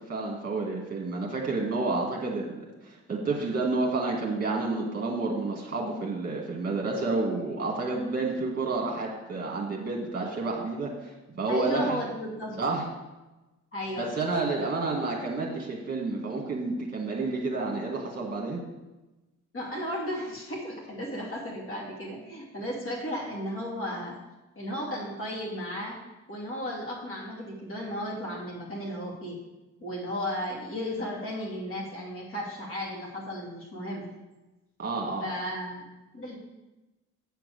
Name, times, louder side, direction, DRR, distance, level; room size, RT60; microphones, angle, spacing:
voice 1, 0.1-12.0 12.6-12.9 14.0-18.6 34.8-35.3, right 3 dB, 30° right, -1 dB, 1.8 m, -30 dB
voice 2, 11.5-12.6 13.7-14.1 19.5-24.2 24.6-26.0 26.3-29.4 29.8-34.1 35.2-35.9 36.1-36.4, equal, 45° left, -3 dB, 2.7 m, -34 dB
8.3 x 4.6 x 6.7 m, 1.1 s
cardioid pair, 90°, 30 cm